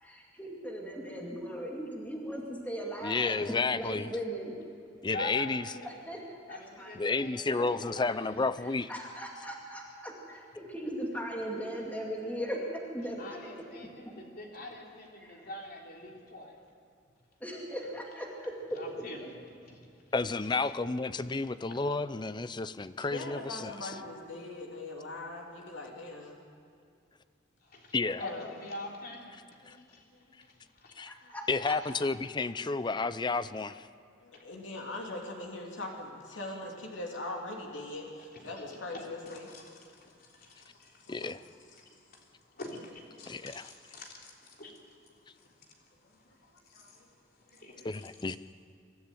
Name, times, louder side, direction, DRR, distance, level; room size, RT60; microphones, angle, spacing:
voice 1, 0.0-4.6 5.9-6.9 7.6-7.7 8.9-13.5 14.0-14.1 15.2-15.5 17.4-18.8 31.0-31.8, equal, 10° left, -1 dB, 2.3 m, -38 dB
voice 2, 3.0-4.1 5.0-5.6 7.0-8.9 20.1-23.9 27.9-28.2 29.7-29.8 31.0-31.1 31.5-33.9 41.1-41.4 43.2-43.7 47.8-48.4, left 3 dB, 25° left, 14 dB, 0.5 m, -31 dB
voice 3, 4.9-6.0 6.5-8.4 13.2-16.5 18.8-19.8 21.9-22.0 27.6-29.4 29.9-30.1 30.4-31.1 31.8-31.9 34.3-34.4 38.9-41.1 41.8-47.1 47.5-48.1, left 2 dB, 55° left, -1 dB, 3.5 m, -46 dB
voice 4, 23.1-26.4 28.2-28.5 29.6-29.9 30.1-30.3 31.2-31.4 34.2-39.5 41.0-41.3 46.0-46.1 46.5-46.9 47.7-47.9, left 2 dB, 80° left, 0 dB, 3.0 m, -41 dB
23.5 x 13.0 x 9.1 m, 2.4 s
head